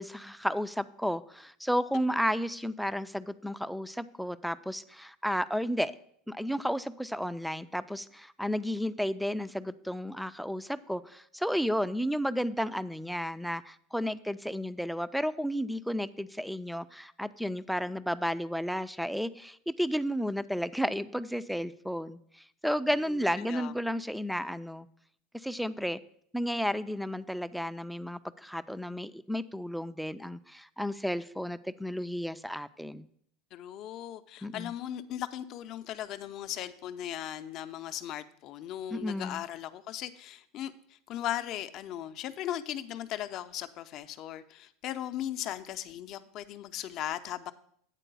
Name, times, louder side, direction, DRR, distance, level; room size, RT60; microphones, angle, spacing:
voice 1, 0.0-5.9 6.3-24.9 25.3-26.0 26.3-33.1 34.4-34.7 38.9-39.4, equal, ahead, 15 dB, 0.3 m, -32 dB
voice 2, 23.1-23.7 33.5-47.5, left 12 dB, 50° left, 11 dB, 0.5 m, -38 dB
9.1 x 3.8 x 6.7 m, 0.66 s
supercardioid pair, 115°, 0 cm